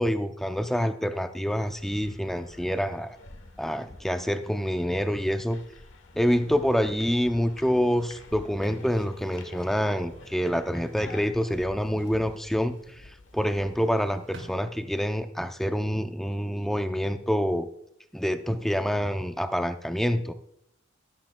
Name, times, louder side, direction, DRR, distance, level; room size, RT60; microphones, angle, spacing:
voice 1, 0.0-3.2 3.6-5.6 6.2-12.7 13.3-17.7 18.1-20.3, equal, ahead, 8 dB, 0.5 m, -27 dB
sound 1, 1.6-14.1, left 3 dB, 90° left, 1.2 m, -49 dB
sound 2, 8.6-11.3 11.5-12.4 13.5-15.3 15.7-16.4, right 1 dB, 65° right, 1.9 m, -52 dB
13.5 x 11.0 x 2.2 m, 0.75 s
head